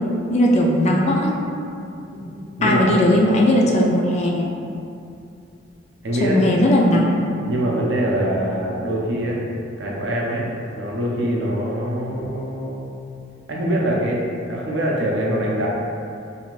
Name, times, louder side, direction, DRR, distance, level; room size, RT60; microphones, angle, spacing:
voice 1, 0.3-1.3 2.6-4.4 6.2-7.1, left 1 dB, 40° left, -1 dB, 0.3 m, -17 dB
voice 2, 6.0-6.6 7.5-9.4 9.8-10.5 10.7-12.8 13.5-15.7, right 1 dB, 75° right, -3 dB, 0.5 m, -23 dB
2.6 x 2.4 x 3.1 m, 2.5 s
head